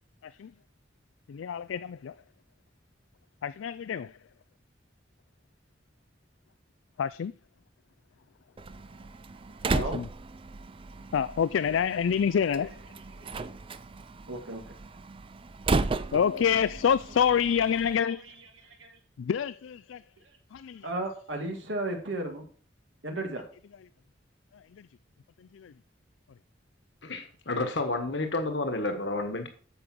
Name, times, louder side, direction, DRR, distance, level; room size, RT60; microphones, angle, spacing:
voice 1, 1.3-2.1 3.4-4.1 7.0-7.3 9.7-10.0 11.1-12.8 16.1-18.3 19.2-20.0 20.5-20.9 24.8-24.9 25.5-25.7, left 7 dB, 90° left, 0.4 m, -27 dB
Slam, 8.6-18.0, right 3 dB, 30° right, 0.4 m, -35 dB
voice 2, 12.5-13.5 14.3-14.7 17.0-19.0 20.2-20.4 20.8-22.4 23.0-23.5 28.2-28.3 29.2-29.3, right 2 dB, 80° right, 2.3 m, -37 dB
voice 3, 27.0-29.5, left 2 dB, 65° left, 1.5 m, -30 dB
8.7 x 6.8 x 6.1 m
head